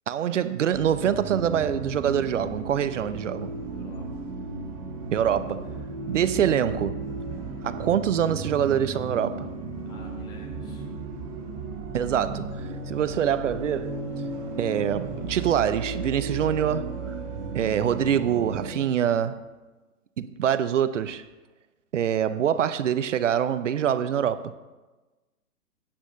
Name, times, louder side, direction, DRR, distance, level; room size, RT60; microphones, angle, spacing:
voice 1, 0.1-3.5 5.1-5.7 6.1-7.0 7.6-9.5 11.9-14.0 14.6-16.9 17.5-19.4 20.2-21.2 21.9-24.5, right 9 dB, 55° right, 0.5 m, -25 dB
sound 1, 0.7-18.7, right 3 dB, 25° right, 0.8 m, -35 dB
voice 2, 3.7-4.3 9.8-10.9, left 2 dB, 10° left, 0.7 m, -50 dB
8.7 x 4.9 x 6.5 m
figure-of-eight pair, 125°, 45 cm